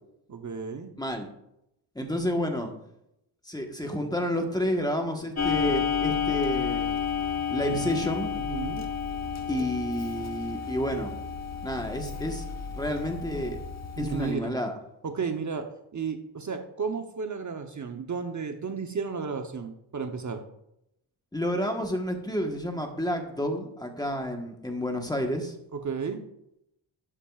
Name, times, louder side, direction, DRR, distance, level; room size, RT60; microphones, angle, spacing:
voice 1, 0.3-0.9 8.5-8.8 14.0-14.5 15.0-15.7 15.9-20.4 25.7-26.2, right 5 dB, 40° right, 5 dB, 0.9 m, -33 dB
voice 2, 1.9-2.7 3.4-6.9 7.5-8.3 9.5-11.1 11.6-12.4 12.7-13.6 14.0-14.8 21.3-25.5, equal, 10° left, 3 dB, 1.3 m, -30 dB
Clock, 5.4-14.3, left 7 dB, 35° left, 1.1 m, -31 dB
12.0 x 7.3 x 2.4 m, 0.81 s
cardioid pair, 90°, 47 cm